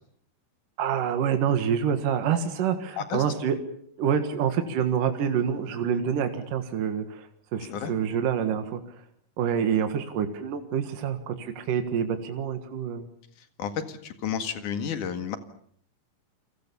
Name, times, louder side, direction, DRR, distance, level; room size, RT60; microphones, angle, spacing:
voice 1, 0.8-3.6 4.0-8.8 9.4-13.1, right 8 dB, 75° right, 7 dB, 3.3 m, -27 dB
voice 2, 13.6-15.4, left 8 dB, 70° left, 8 dB, 3.4 m, -31 dB
29.5 x 22.0 x 7.0 m, 0.64 s
omnidirectional pair, 3.8 m